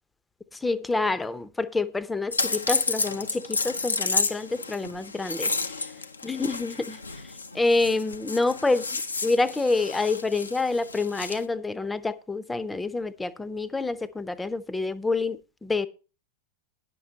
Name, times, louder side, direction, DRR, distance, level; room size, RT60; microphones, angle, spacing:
voice 1, 0.5-5.7 6.2-7.0 7.5-15.9, left 3 dB, 10° left, 0.7 m, -27 dB
sound 1, 2.3-11.5, left 4 dB, 80° left, 0.7 m, -31 dB
10.0 x 6.9 x 5.5 m
figure-of-eight pair, 90°, 0 cm